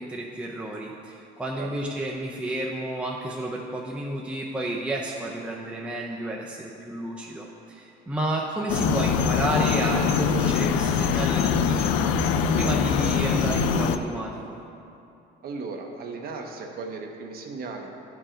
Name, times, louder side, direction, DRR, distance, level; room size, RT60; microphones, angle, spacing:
voice 1, 0.0-12.1 12.5-14.6, right 1 dB, 5° right, -2 dB, 0.5 m, -31 dB
sound 1, 8.7-14.0, left 7 dB, 85° left, 0.5 m, -23 dB
voice 2, 15.4-17.9, right 4 dB, 50° right, 2 dB, 0.8 m, -36 dB
11.5 x 4.7 x 3.8 m, 2.7 s
cardioid pair, 150°, 20 cm